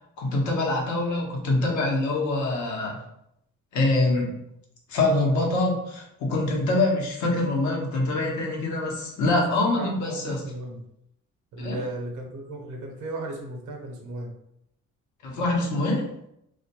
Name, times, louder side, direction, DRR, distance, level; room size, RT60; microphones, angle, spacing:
voice 1, 0.2-3.0 3.7-4.3 4.9-10.4 11.6-11.8 15.2-16.1, left 2 dB, 75° left, -1 dB, 0.9 m, -24 dB
voice 2, 9.8-10.8 11.5-14.3, right 2 dB, 80° right, 1 dB, 0.7 m, -35 dB
2.4 x 2.2 x 2.8 m, 0.78 s
cardioid pair, 90°, 30 cm